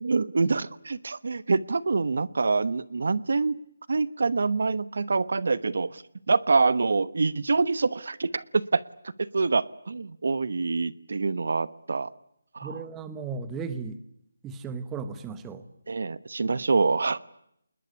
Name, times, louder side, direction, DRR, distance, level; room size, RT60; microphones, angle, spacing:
voice 1, 0.0-3.6 3.9-6.0 6.3-8.8 9.2-12.1 12.5-12.8 15.9-17.2, right 4 dB, 65° right, 18 dB, 1.0 m, -25 dB
voice 2, 12.6-14.0 14.4-15.7, right 5 dB, 10° right, 12 dB, 1.1 m, -35 dB
26.5 x 21.0 x 9.7 m, 0.76 s
hypercardioid pair, 170°, 0 cm